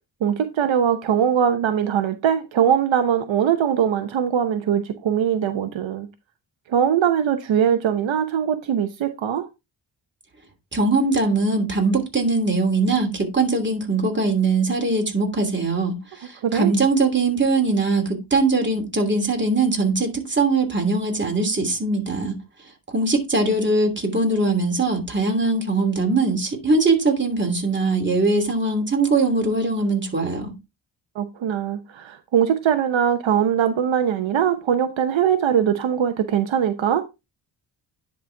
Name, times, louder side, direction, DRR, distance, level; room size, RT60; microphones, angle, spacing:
voice 1, 0.2-6.1 6.7-9.5 16.4-16.7 31.2-37.0, right 8 dB, 75° right, 0.9 m, -21 dB
voice 2, 10.7-22.4 22.9-30.5, right 3 dB, 25° right, 2.9 m, -21 dB
10.5 x 4.4 x 3.4 m
cardioid pair, 70°, 47 cm